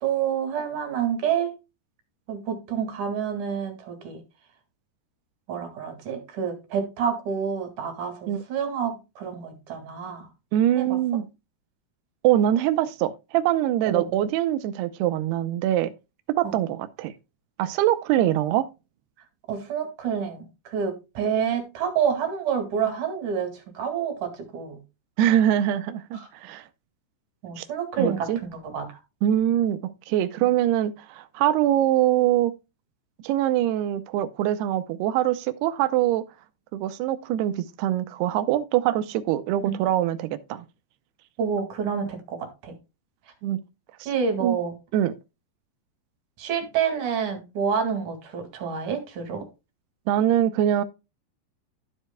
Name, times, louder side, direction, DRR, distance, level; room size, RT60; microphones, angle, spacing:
voice 1, 0.0-1.5 2.3-4.2 5.5-10.3 10.8-11.0 13.8-14.1 16.4-16.5 19.5-24.8 26.1-26.3 27.4-28.3 28.6-28.9 39.6-39.8 41.4-42.8 44.1-44.7 46.4-49.5, right 7 dB, 50° right, 3.0 m, -28 dB
voice 2, 10.5-11.3 12.2-15.9 16.3-17.1 17.6-18.7 25.2-26.6 27.6-27.7 28.0-28.4 29.2-29.8 30.1-32.5 33.2-36.2 36.7-40.6 43.4-43.6 44.0-44.1 44.4-44.6 44.9-45.1 50.1-50.8, right 12 dB, 80° right, 2.5 m, -23 dB
13.0 x 7.9 x 2.2 m
omnidirectional pair, 5.2 m